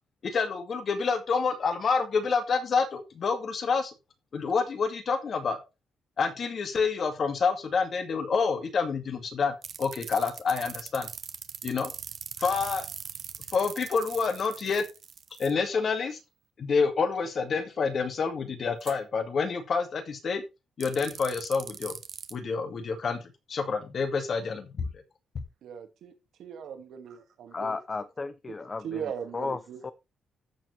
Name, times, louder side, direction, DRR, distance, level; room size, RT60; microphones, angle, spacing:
voice 1, 0.2-3.9 4.3-5.6 6.2-11.1 11.6-11.9 12.4-12.9 13.5-14.8 15.4-16.2 16.6-20.4 20.8-22.0 22.3-23.2 23.5-24.9, left 5 dB, 40° left, 7 dB, 2.0 m, -28 dB
sound 1, 9.6-15.5 18.8-18.9 20.8-22.3, right 7 dB, 45° right, 1.1 m, -41 dB
voice 2, 25.6-26.1 26.4-27.8 28.8-29.9, right 8 dB, 65° right, 6 dB, 2.1 m, -39 dB
voice 3, 27.5-29.9, left 3 dB, 20° left, 13 dB, 0.6 m, -35 dB
13.5 x 7.3 x 3.3 m, 0.26 s
cardioid pair, 170°, 0 cm